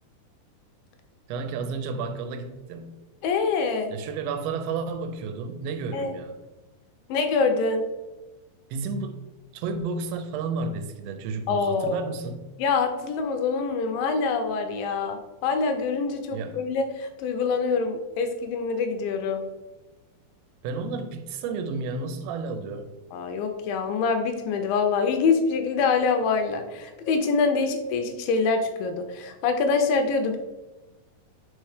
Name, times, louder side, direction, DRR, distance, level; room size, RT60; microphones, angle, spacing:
voice 1, 1.3-2.9 3.9-6.4 8.7-9.2 9.5-12.5 16.3-16.6 20.6-22.9, right 4 dB, 85° right, 8 dB, 2.4 m, -32 dB
voice 2, 3.2-3.9 5.9-6.1 7.1-7.9 11.5-12.1 12.6-19.5 23.1-30.4, left 4 dB, 80° left, 6 dB, 2.2 m, -25 dB
4.9 x 4.4 x 4.8 m, 1.1 s
omnidirectional pair, 4.3 m